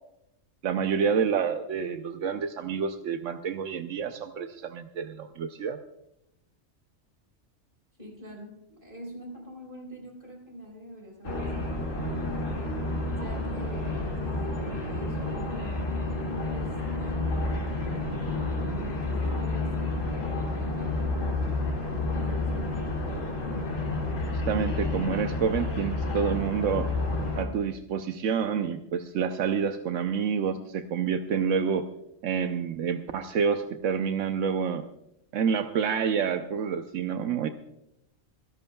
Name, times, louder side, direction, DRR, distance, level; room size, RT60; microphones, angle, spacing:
voice 1, 0.6-5.8 24.3-26.9 27.4-31.9 32.2-34.9 35.3-37.5, right 7 dB, 85° right, 7 dB, 1.1 m, -28 dB
voice 2, 8.0-11.7 12.4-12.6 13.2-15.8 16.4-21.2 22.1-22.9, right 1 dB, 40° right, 0 dB, 4.5 m, -44 dB
sound 1, 11.2-27.5, left 2 dB, 90° left, 2.8 m, -30 dB
27.0 x 11.0 x 2.3 m, 0.82 s
omnidirectional pair, 1.3 m